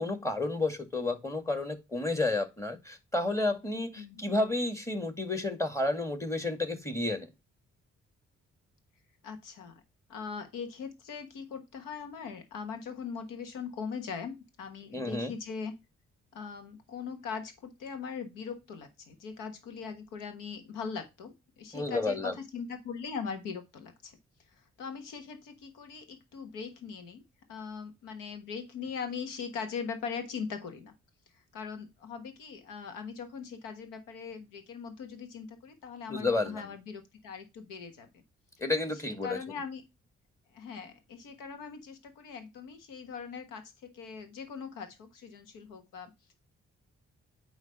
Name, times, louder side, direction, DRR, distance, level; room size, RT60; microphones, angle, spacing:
voice 1, 0.0-7.3 14.9-15.3 21.7-22.3 36.1-36.6 38.6-39.4, left 2 dB, 10° left, 2.0 m, -31 dB
voice 2, 9.2-9.8 10.1-15.7 16.3-24.2 24.6-27.2 27.5-30.9 31.4-38.2 39.0-39.8 40.5-46.3, left 6 dB, 85° left, 1.3 m, -40 dB
9.0 x 3.0 x 5.6 m
hypercardioid pair, 40°, 31 cm